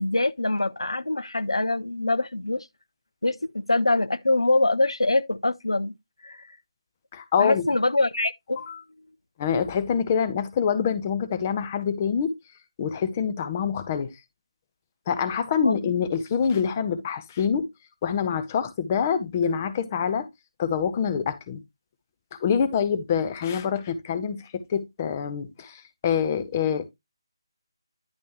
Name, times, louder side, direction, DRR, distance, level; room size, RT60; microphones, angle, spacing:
voice 1, 0.0-2.7 3.2-5.9 6.2-6.5 7.4-8.6 15.6-15.9, left 2 dB, 80° left, 0.6 m, -24 dB
voice 2, 7.1-7.7 8.6-8.8 9.4-12.3 12.8-14.1 15.1-17.7 18.0-20.3 20.6-21.6 22.3-26.9, left 7 dB, 25° left, 0.8 m, -26 dB
10.5 x 5.2 x 3.0 m
figure-of-eight pair, 155°, 3 cm